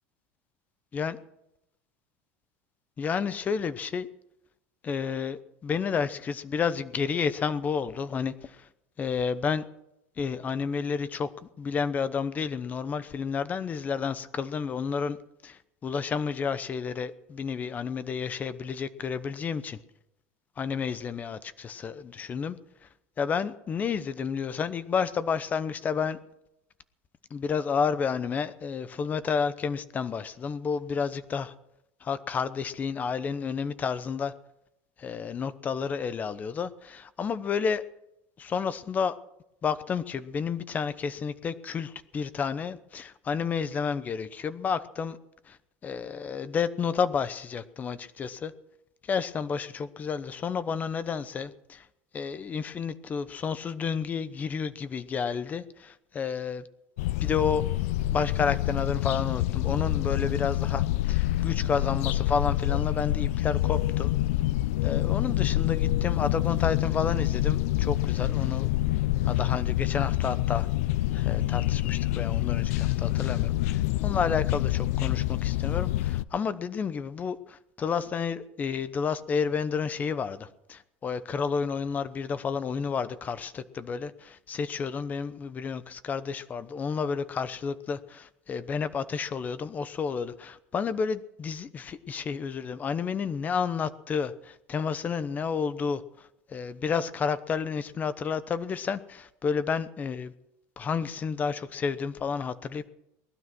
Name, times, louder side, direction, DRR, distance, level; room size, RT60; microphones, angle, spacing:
voice 1, 3.0-4.1 4.8-8.7 9.0-9.6 10.2-15.2 15.4-19.8 20.6-22.6 23.2-26.2 27.3-31.5 32.0-34.3 35.0-37.8 38.4-39.2 39.6-45.2 45.5-45.6 45.8-48.5 49.0-51.9 52.1-56.6 57.2-57.6 58.1-64.1 64.8-68.7 69.2-70.7 71.1-100.3 100.8-102.8, left 6 dB, 20° left, 14 dB, 0.8 m, -31 dB
sound 1, 57.0-76.2, left 15 dB, 90° left, 0.6 m, -27 dB
19.5 x 12.0 x 6.1 m, 0.84 s
cardioid pair, 165°, 8 cm